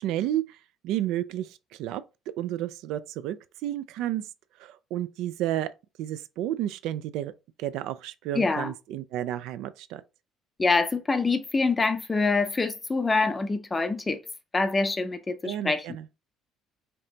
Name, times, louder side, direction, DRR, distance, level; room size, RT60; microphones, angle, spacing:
voice 1, 0.0-2.0 2.4-3.4 3.6-4.3 4.6-5.7 6.0-7.3 7.6-10.0 15.4-16.1, right 12 dB, 70° right, 0.3 m, -31 dB
voice 2, 8.3-8.7 10.6-14.2 14.5-15.8, left 3 dB, 15° left, 0.5 m, -25 dB
5.2 x 2.8 x 2.8 m
cardioid pair, 165°, 0 cm